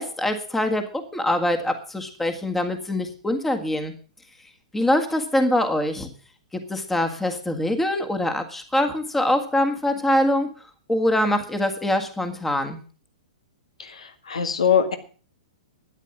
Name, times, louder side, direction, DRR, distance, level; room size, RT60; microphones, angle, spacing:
voice 1, 0.0-3.9 4.7-6.1 6.5-10.5 10.9-12.8, left 1 dB, 5° left, 6 dB, 1.7 m, -24 dB
voice 2, 13.8-15.0, left 7 dB, 65° left, 8 dB, 1.8 m, -23 dB
13.0 x 10.0 x 6.1 m, 0.40 s
figure-of-eight pair, 110°, 4 cm